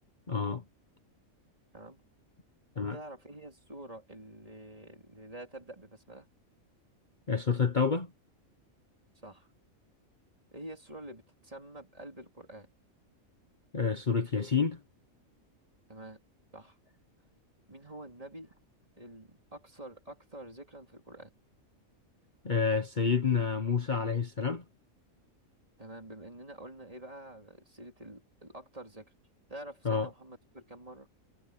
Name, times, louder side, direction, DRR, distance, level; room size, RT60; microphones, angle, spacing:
voice 1, 0.3-0.6 2.8-3.0 7.3-8.1 13.7-14.8 22.4-24.6 29.8-30.1, left 5 dB, 35° left, 1.2 m, -28 dB
voice 2, 2.9-6.3 9.2-9.5 10.5-12.7 15.9-16.2 16.5-16.8 17.7-18.5 19.0-21.3 25.8-29.1 29.5-31.1, right 1 dB, 25° right, 3.5 m, -47 dB
omnidirectional pair, 1.4 m